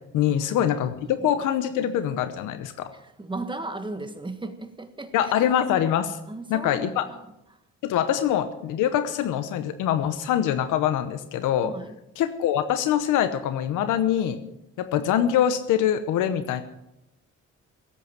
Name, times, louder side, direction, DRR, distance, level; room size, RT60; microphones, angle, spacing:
voice 1, 0.1-2.9 5.1-6.2 6.5-7.1 7.8-11.7 12.2-14.4 14.8-16.6, left 10 dB, 90° left, 11 dB, 0.9 m, -24 dB
voice 2, 2.9-5.3 6.3-7.2 11.6-12.0, right 2 dB, 15° right, 9 dB, 1.5 m, -36 dB
16.5 x 8.5 x 7.6 m, 0.87 s
cardioid pair, 90°, 30 cm